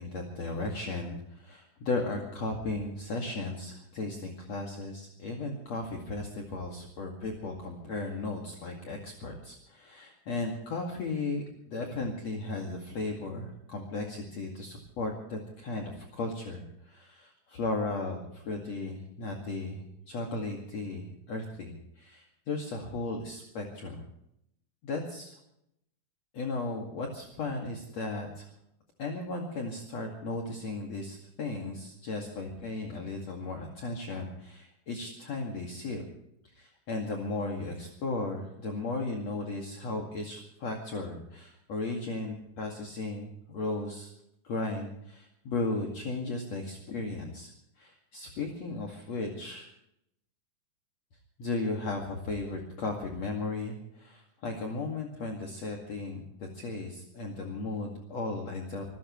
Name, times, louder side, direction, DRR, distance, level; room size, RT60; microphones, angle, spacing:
voice 1, 0.0-24.0 24.8-25.3 26.3-28.5 29.0-36.0 36.5-44.1 44.4-47.5 47.8-49.7 51.4-58.8, left 2 dB, 50° left, 0 dB, 3.1 m, -35 dB
26.5 x 16.0 x 3.2 m, 0.77 s
omnidirectional pair, 4.1 m